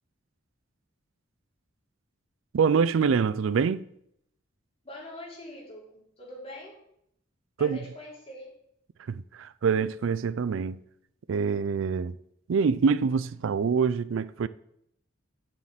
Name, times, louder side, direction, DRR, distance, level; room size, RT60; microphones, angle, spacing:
voice 1, 2.5-3.9 7.6-7.8 9.1-10.8 11.3-12.1 12.5-14.5, right 6 dB, 80° right, 0.4 m, -25 dB
voice 2, 4.8-6.8 7.6-8.6, left 1 dB, 30° left, 3.4 m, -43 dB
7.5 x 6.5 x 7.4 m
head